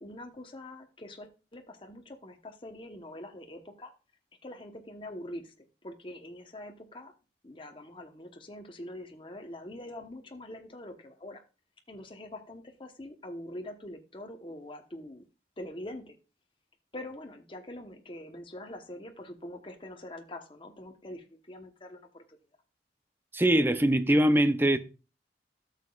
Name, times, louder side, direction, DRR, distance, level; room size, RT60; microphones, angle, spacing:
voice 1, 0.0-3.9 4.4-7.1 7.4-11.4 11.9-15.2 15.6-16.1 16.9-22.4, left 1 dB, 30° left, 1.0 m, -44 dB
voice 2, 23.3-24.8, right 1 dB, 10° right, 0.6 m, -22 dB
13.5 x 6.7 x 2.4 m
head